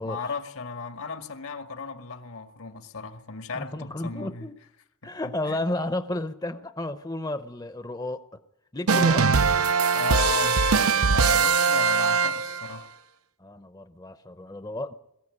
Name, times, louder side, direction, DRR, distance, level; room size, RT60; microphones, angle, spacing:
voice 1, 0.0-4.5 5.0-5.8 9.9-12.9, left 4 dB, 80° left, 2.0 m, -35 dB
voice 2, 3.5-4.5 5.0-8.2 8.7-9.3 13.4-14.9, left 1 dB, 20° left, 0.7 m, -32 dB
sound 1, 8.9-12.7, right 5 dB, 85° right, 0.7 m, -21 dB
21.5 x 15.0 x 9.8 m
head